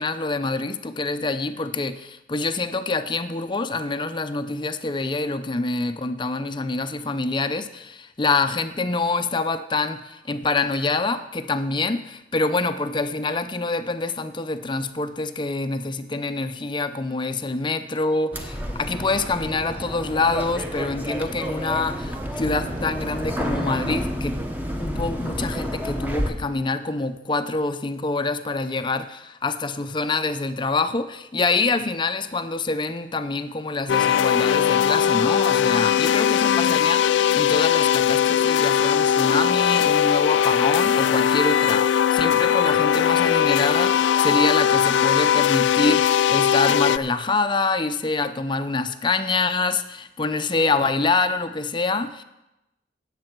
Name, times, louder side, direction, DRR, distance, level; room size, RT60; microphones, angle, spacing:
voice 1, 0.0-24.4 24.8-52.2, left 3 dB, 25° left, 10 dB, 0.5 m, -26 dB
sound 1, 18.3-26.3, equal, 10° right, 1.0 m, -30 dB
sound 2, 33.9-47.0, left 9 dB, 90° left, 0.3 m, -19 dB
17.5 x 7.6 x 4.5 m, 0.95 s
head